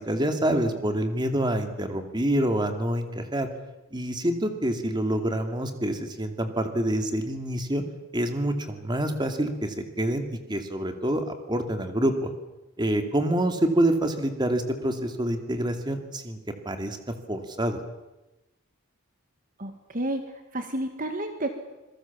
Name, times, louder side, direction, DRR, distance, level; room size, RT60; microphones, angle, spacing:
voice 1, 0.0-3.5 3.9-7.8 8.1-10.2 10.5-12.3 12.8-16.4 16.6-17.0 17.3-17.8, right 1 dB, 20° right, 6 dB, 2.5 m, -26 dB
voice 2, 19.6-20.2 20.5-21.5, right 1 dB, 40° right, 6 dB, 1.9 m, -30 dB
26.5 x 22.0 x 7.3 m, 1.0 s
head